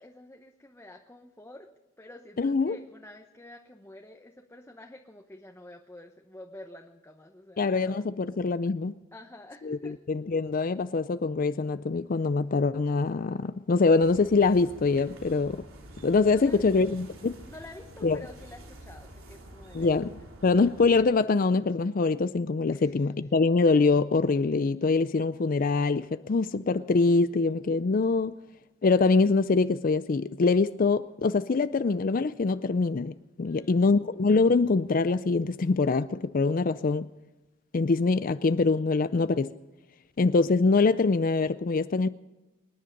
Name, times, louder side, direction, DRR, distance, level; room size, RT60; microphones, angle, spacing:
voice 1, 0.0-1.7 2.0-8.1 9.1-9.9 16.3-16.7 17.5-20.0 22.7-23.0 33.4-33.9, left 1 dB, 10° left, 0.9 m, -48 dB
voice 2, 2.4-2.8 7.6-8.9 9.6-15.6 16.0-17.4 18.0-18.2 19.7-28.3 28.8-37.1 37.7-39.5 40.2-42.1, left 4 dB, 45° left, 0.4 m, -24 dB
sound 1, 14.0-21.0, right 1 dB, 90° right, 3.4 m, -48 dB
25.5 x 10.5 x 5.3 m
head